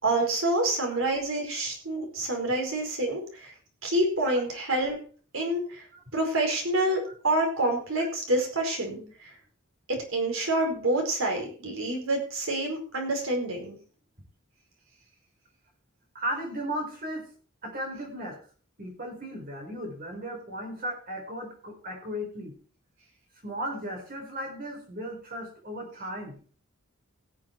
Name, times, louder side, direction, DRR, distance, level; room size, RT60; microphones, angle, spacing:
voice 1, 0.0-3.5 3.8-5.0 5.3-5.9 6.1-9.3 9.9-13.8, right 1 dB, 75° right, 2 dB, 4.7 m, -27 dB
voice 2, 16.1-17.3 17.6-18.4 18.8-22.6 23.4-26.4, equal, 45° right, 2 dB, 4.6 m, -36 dB
17.5 x 7.4 x 4.5 m, 0.41 s
head